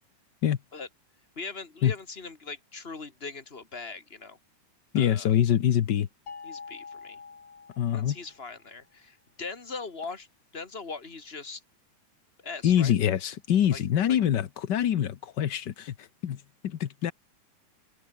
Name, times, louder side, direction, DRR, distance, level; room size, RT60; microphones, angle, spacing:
voice 1, 1.4-4.4 4.9-5.3 6.4-7.2 7.9-10.3 10.5-11.6 12.4-12.9 13.7-13.8 14.1-14.2, left 4 dB, 20° left, 2.3 m, -40 dB
voice 2, 4.9-6.1 7.8-8.2 12.6-17.1, left 10 dB, 90° left, 0.9 m, -25 dB
sound 1, 6.3-8.5, left 5 dB, 65° left, 5.7 m, -45 dB
omnidirectional pair, 3.5 m